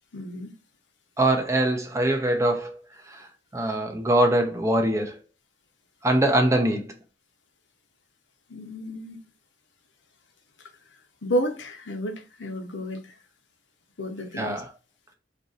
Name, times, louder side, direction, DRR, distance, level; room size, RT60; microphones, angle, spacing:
voice 1, 0.1-0.5 8.5-9.2 11.2-13.1 14.0-14.6, equal, 70° left, 0.8 m, -31 dB
voice 2, 1.2-2.8 3.1-3.3 3.5-5.2 6.0-6.8 14.4-14.7, right 1 dB, 15° right, 0.6 m, -23 dB
3.0 x 2.6 x 3.8 m
head